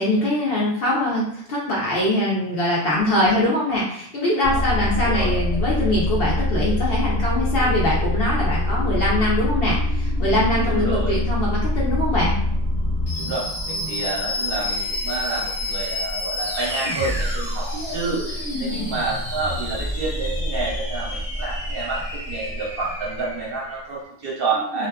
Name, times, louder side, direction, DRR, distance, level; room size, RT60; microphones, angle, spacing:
voice 1, 0.0-12.4 18.5-18.9 24.7-24.9, left 1 dB, 60° left, -5 dB, 0.7 m, -23 dB
sound 1, 4.4-23.8, left 1 dB, 25° left, 0.9 m, -25 dB
voice 2, 4.5-5.3 10.6-11.2 13.2-24.9, right 3 dB, 55° right, -5 dB, 0.7 m, -29 dB
2.6 x 2.3 x 2.2 m, 0.68 s
omnidirectional pair, 1.4 m